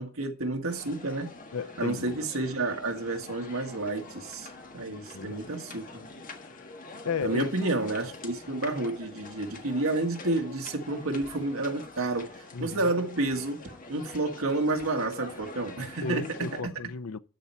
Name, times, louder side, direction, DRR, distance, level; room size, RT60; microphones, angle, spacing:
voice 1, 0.0-1.3 1.8-6.0 7.2-16.6, right 2 dB, 70° right, 1.7 m, -30 dB
sound 1, 0.7-16.6, left 3 dB, 40° left, 1.5 m, -45 dB
voice 2, 1.5-2.4 5.1-5.4 6.3-6.7 7.0-7.5 12.5-12.9 16.0-17.2, left 5 dB, 85° left, 0.6 m, -35 dB
13.0 x 4.4 x 8.3 m
head